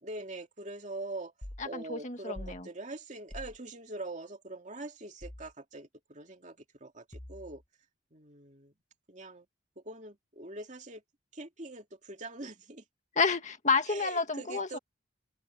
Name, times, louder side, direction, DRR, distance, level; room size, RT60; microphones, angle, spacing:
voice 1, 0.0-1.3 1.6-7.6 8.1-8.7 9.1-9.5 9.8-11.0 11.3-12.8 13.9-14.8, right 2 dB, 40° right, 2.5 m, -43 dB
sound 1, 1.4-1.7 2.3-2.6 3.3-3.6 5.2-5.5 7.1-7.6, left 1 dB, 20° left, 1.0 m, -44 dB
voice 2, 1.6-2.6 13.2-14.8, left 4 dB, 40° left, 2.0 m, -30 dB
open air
head